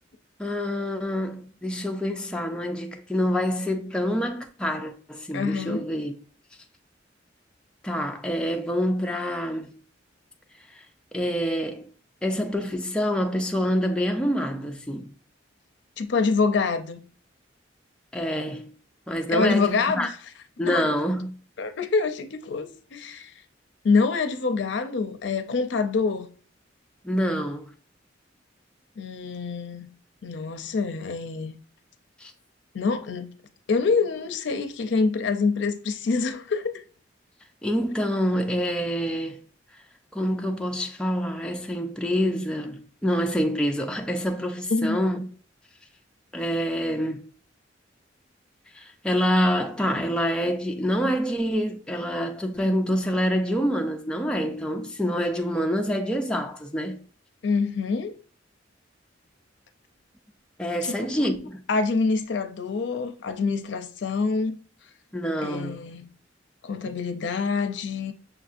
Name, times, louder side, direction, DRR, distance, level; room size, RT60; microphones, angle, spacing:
voice 1, 0.4-6.1 7.8-9.8 10.8-10.9 11.1-11.9 12.2-15.1 18.1-18.7 19.1-20.1 20.6-21.4 27.0-27.7 32.2-32.3 37.6-39.4 40.1-45.3 46.3-47.3 48.7-57.0 60.6-61.6 65.1-65.8, equal, 5° left, 0.4 m, -26 dB
voice 2, 5.3-5.9 16.0-17.0 19.3-20.1 20.7-20.9 21.6-23.3 23.8-26.3 29.0-29.9 30.2-31.6 32.7-33.3 33.7-36.8 44.7-45.0 57.4-58.2 60.8-61.1 61.7-64.6 65.4-66.1 66.6-68.1, left 4 dB, 65° left, 0.5 m, -26 dB
6.2 x 2.6 x 2.4 m
head